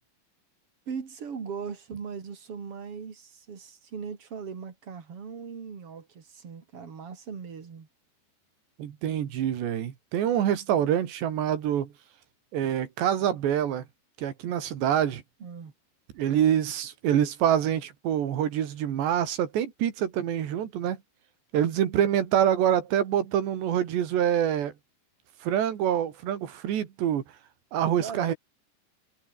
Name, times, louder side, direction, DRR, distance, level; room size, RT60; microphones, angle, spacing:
voice 1, 0.9-7.9 15.4-15.7 28.0-28.3, right 6 dB, 35° right, 3.4 m, -39 dB
voice 2, 8.8-11.9 12.5-13.8 14.2-15.2 16.2-21.0 21.5-24.7 25.4-27.2 27.7-28.4, right 10 dB, 75° right, 4.5 m, -26 dB
omnidirectional pair, 5.0 m